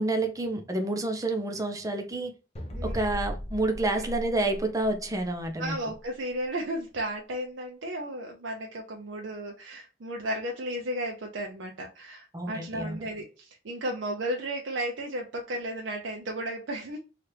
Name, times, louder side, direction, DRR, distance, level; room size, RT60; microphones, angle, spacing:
voice 1, 0.0-2.3 2.8-5.8 12.3-13.1, right 2 dB, 20° right, 0.6 m, -29 dB
sound 1, 2.6-5.3, equal, 35° left, 0.6 m, -37 dB
voice 2, 2.8-3.2 3.9-4.0 5.6-17.0, right 1 dB, 70° right, 0.5 m, -34 dB
2.9 x 2.4 x 3.2 m
head